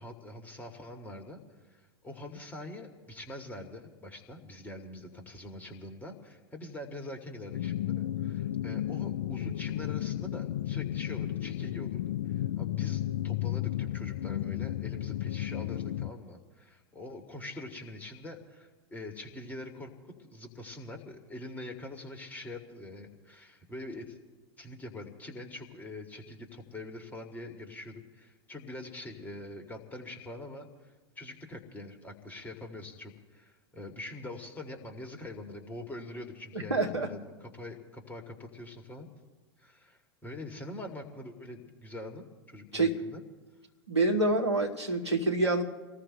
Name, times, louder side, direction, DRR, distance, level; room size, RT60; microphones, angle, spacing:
voice 1, 0.0-1.4 1.7-24.2 24.6-39.1 39.6-43.2, left 2 dB, 10° left, 2 dB, 2.3 m, -44 dB
sound 1, 7.5-16.1, left 12 dB, 60° left, 0.5 m, -33 dB
voice 2, 36.7-37.1 42.7-43.0 43.9-45.6, right 2 dB, 90° right, 0 dB, 2.1 m, -26 dB
30.0 x 19.5 x 2.3 m, 1.3 s
figure-of-eight pair, 90°, 14 cm